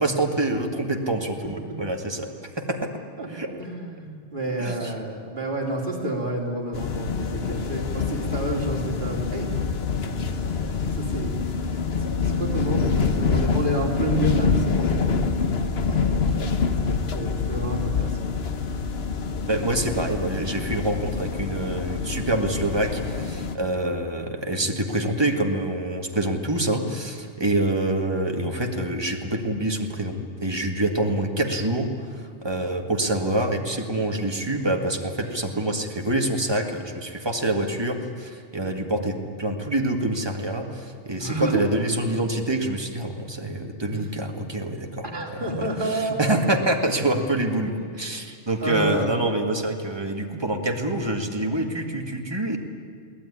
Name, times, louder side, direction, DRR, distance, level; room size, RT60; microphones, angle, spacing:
voice 1, 0.0-2.9 3.3-3.5 4.6-4.9 19.5-45.1 45.3-52.6, right 1 dB, 20° right, 3 dB, 1.9 m, -26 dB
voice 2, 3.6-9.8 10.0-10.3 10.9-11.6 12.0-15.3 15.9-16.2 16.6-18.2 41.2-41.6 43.8-44.0 45.0-46.2 47.7-47.9 48.6-49.1, right 1 dB, 40° right, 0 dB, 3.6 m, -30 dB
sound 1, 6.7-23.5, left 5 dB, 55° left, 1.3 m, -26 dB
22.5 x 17.0 x 9.9 m, 2.1 s
omnidirectional pair, 1.3 m